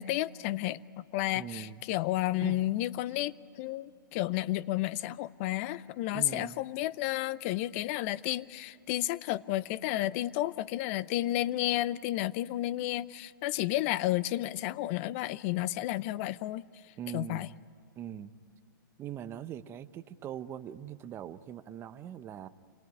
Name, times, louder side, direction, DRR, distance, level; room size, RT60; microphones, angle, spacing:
voice 1, 0.0-16.6 17.1-17.5, left 15 dB, 40° left, 19 dB, 0.6 m, -32 dB
voice 2, 1.3-1.8 2.4-2.6 6.1-6.6 17.0-17.5 18.0-18.3 19.0-22.5, right 10 dB, 20° right, 12 dB, 0.8 m, -41 dB
27.5 x 18.5 x 9.5 m, 2.6 s
hypercardioid pair, 140°, 11 cm